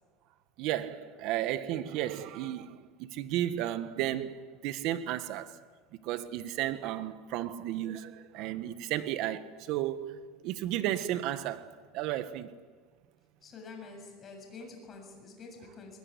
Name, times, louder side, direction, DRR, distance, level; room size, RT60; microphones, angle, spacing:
voice 1, 0.6-4.4 4.6-5.6 6.0-10.2 10.4-12.5, right 12 dB, 55° right, 1.5 m, -33 dB
voice 2, 13.4-16.0, left 4 dB, 25° left, 7.6 m, -47 dB
21.0 x 21.0 x 9.7 m
supercardioid pair, 145°, 0 cm